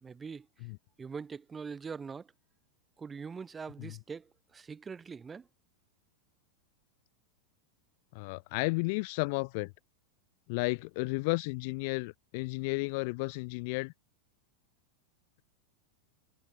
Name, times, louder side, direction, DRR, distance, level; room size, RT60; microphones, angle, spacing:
voice 1, 0.0-0.5 1.0-2.3 3.0-5.5, right 5 dB, 15° right, 1.3 m, -43 dB
voice 2, 8.1-9.7 10.5-13.9, left 29 dB, 45° left, 0.6 m, -33 dB
figure-of-eight pair, 90°, 0 cm